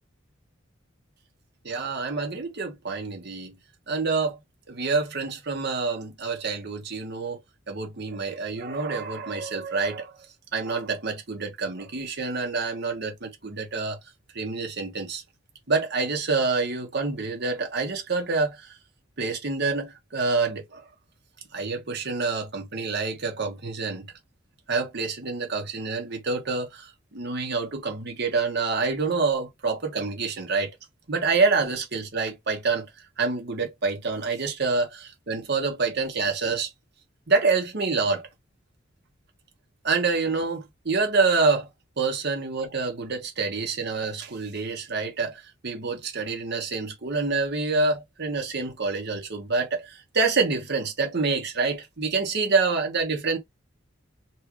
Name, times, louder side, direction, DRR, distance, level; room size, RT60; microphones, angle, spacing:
voice 1, 1.6-3.5 3.9-4.4 4.7-7.4 7.7-10.1 10.5-14.0 14.3-15.2 15.7-18.6 19.2-20.8 21.5-24.1 24.7-26.9 27.1-30.7 31.1-32.8 33.2-36.7 37.3-38.2 39.8-41.7 42.0-53.4, right 4 dB, 55° right, 1.2 m, -27 dB
4.3 x 2.4 x 3.0 m
head